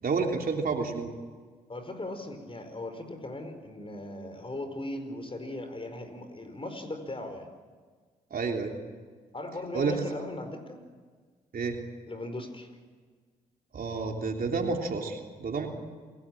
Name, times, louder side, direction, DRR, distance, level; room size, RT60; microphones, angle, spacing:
voice 1, 0.0-1.1 8.3-8.7 9.7-10.0 11.5-11.8 13.7-15.7, right 4 dB, 55° right, 2 dB, 3.3 m, -30 dB
voice 2, 1.7-7.5 9.3-10.8 12.1-12.7, left 2 dB, 30° left, 7 dB, 4.8 m, -38 dB
27.5 x 15.0 x 9.0 m, 1.5 s
hypercardioid pair, 40°, 18 cm